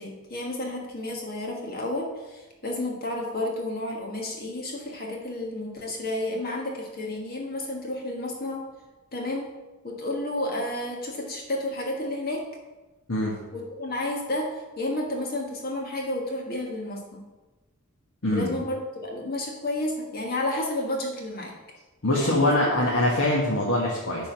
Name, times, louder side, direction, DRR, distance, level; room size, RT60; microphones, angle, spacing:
voice 1, 0.0-8.6 9.1-9.5 9.8-12.4 13.5-17.2 18.3-21.5 22.1-22.5, left 1 dB, 45° left, -1 dB, 1.5 m, -31 dB
voice 2, 22.0-24.3, left 1 dB, 65° left, -4 dB, 1.3 m, -23 dB
10.5 x 3.8 x 6.1 m, 1.2 s
head